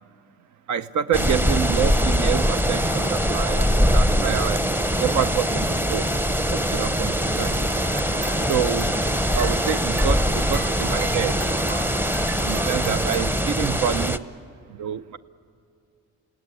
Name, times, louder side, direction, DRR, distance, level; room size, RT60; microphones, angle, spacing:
voice 1, 0.7-3.7 3.9-4.6 5.0-6.1 6.5-7.6 8.4-8.9 9.3-11.4 12.4-14.3 14.7-15.2, right 9 dB, 75° right, 12 dB, 0.7 m, -27 dB
sound 1, 1.1-14.2, equal, 5° right, 0.7 m, -22 dB
sound 2, 7.3-13.2, right 4 dB, 40° right, 1.0 m, -39 dB
28.0 x 17.0 x 9.8 m, 2.5 s
cardioid pair, 90°, 30 cm